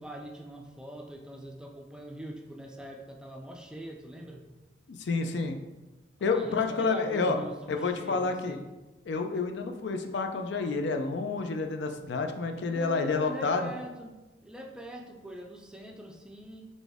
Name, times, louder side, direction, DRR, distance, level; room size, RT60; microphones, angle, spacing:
voice 1, 0.0-4.4 6.2-8.7 12.7-14.2 14.4-16.7, right 1 dB, 5° right, 1 dB, 0.4 m, -43 dB
voice 2, 4.9-5.6 6.2-7.4 7.7-8.6 9.1-13.7, left 4 dB, 65° left, 6 dB, 0.4 m, -29 dB
4.1 x 3.5 x 3.4 m, 1.1 s
head